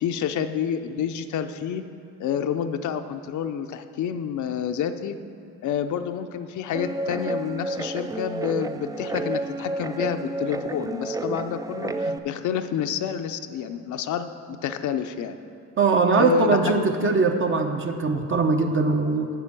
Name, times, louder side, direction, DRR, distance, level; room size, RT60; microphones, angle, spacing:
voice 1, 0.0-1.8 2.2-5.2 5.6-15.4 16.2-16.9, left 8 dB, 75° left, 8 dB, 0.7 m, -28 dB
Guitar, 6.7-12.2, right 2 dB, 10° right, 0.3 m, -30 dB
voice 2, 15.8-19.3, right 4 dB, 40° right, 4 dB, 0.9 m, -21 dB
8.3 x 6.2 x 7.6 m, 2.7 s
cardioid pair, 90°, 30 cm